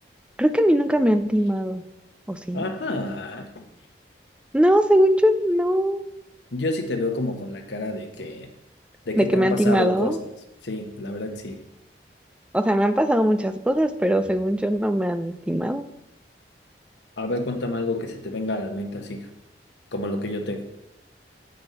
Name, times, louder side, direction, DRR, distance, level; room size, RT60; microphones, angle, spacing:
voice 1, 0.4-1.8 2.3-2.6 4.5-6.0 9.2-10.2 12.5-15.9, equal, 5° right, 10 dB, 0.3 m, -21 dB
voice 2, 2.5-3.6 6.5-8.5 9.1-10.2 10.6-11.6 17.2-19.3 19.9-20.8, left 2 dB, 85° left, 4 dB, 1.0 m, -29 dB
7.9 x 5.3 x 5.5 m, 0.90 s
head